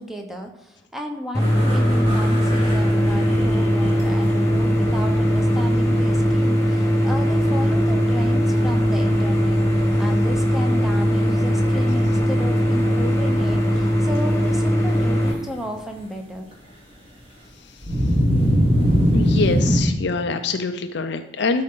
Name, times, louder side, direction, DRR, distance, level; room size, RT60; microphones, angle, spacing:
voice 1, 0.0-16.5, equal, ahead, 3 dB, 0.9 m, -33 dB
sound 1, 1.3-15.3, equal, 15° left, 1.5 m, -19 dB
sound 2, 1.4-6.4 6.7-7.0 7.4-8.2 8.6-8.7 9.0-9.2 9.6-9.9 10.6-13.9 14.2-14.3 17.8-19.8, equal, 35° right, 2.6 m, -24 dB
voice 2, 19.1-21.6, left 4 dB, 60° left, 7 dB, 0.5 m, -24 dB
12.5 x 4.3 x 3.8 m, 0.95 s
head